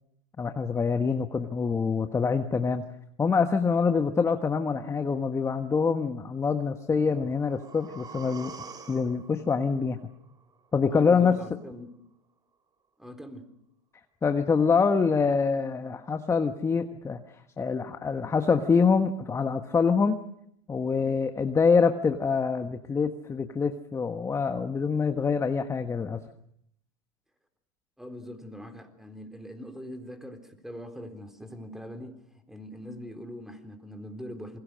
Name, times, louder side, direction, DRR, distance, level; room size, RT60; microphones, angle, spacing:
voice 1, 0.4-2.8 3.2-8.5 8.9-10.0 10.7-11.4 14.2-20.2 20.7-26.2, left 5 dB, 15° left, 8 dB, 1.3 m, -25 dB
sound 1, 7.0-11.0 11.3-11.4, right 5 dB, 25° right, 3.2 m, -47 dB
voice 2, 10.9-11.9 13.0-13.5 28.0-32.1 32.5-34.6, equal, ahead, 7 dB, 4.0 m, -42 dB
27.5 x 22.5 x 6.5 m, 0.71 s
hypercardioid pair, 105°, 17 cm